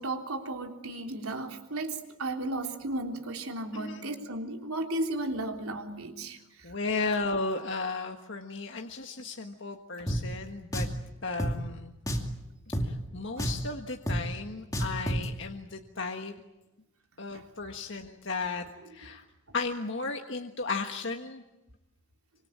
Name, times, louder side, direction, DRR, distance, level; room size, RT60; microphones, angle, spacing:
voice 1, 0.0-6.7 12.8-12.9 13.4-13.5 17.3-17.5, right 2 dB, 80° right, 3 dB, 3.6 m, -35 dB
voice 2, 3.7-4.0 6.6-10.9 11.2-11.9 12.8-16.3 17.2-18.6 18.9-19.2 19.5-21.4, left 3 dB, 55° left, 4 dB, 1.5 m, -34 dB
Drum, 10.1-10.2 10.7-11.0 11.4-11.5 12.1-12.3 12.7-12.9 13.4-13.7 14.1-14.2 14.7-15.3, equal, 15° left, 2.5 m, -29 dB
25.5 x 25.0 x 8.7 m, 0.94 s
head